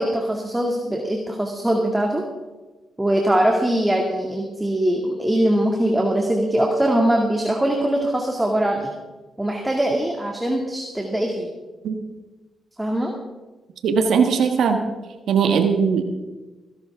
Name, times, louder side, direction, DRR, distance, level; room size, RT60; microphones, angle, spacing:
voice 1, 0.0-2.2 3.0-8.9 9.4-11.5 12.8-13.1, right 1 dB, 10° right, 1 dB, 2.1 m, -22 dB
voice 2, 13.8-14.8 15.3-16.0, right 6 dB, 75° right, 6 dB, 1.4 m, -19 dB
21.5 x 11.5 x 3.5 m, 1.2 s
supercardioid pair, 65°, 0 cm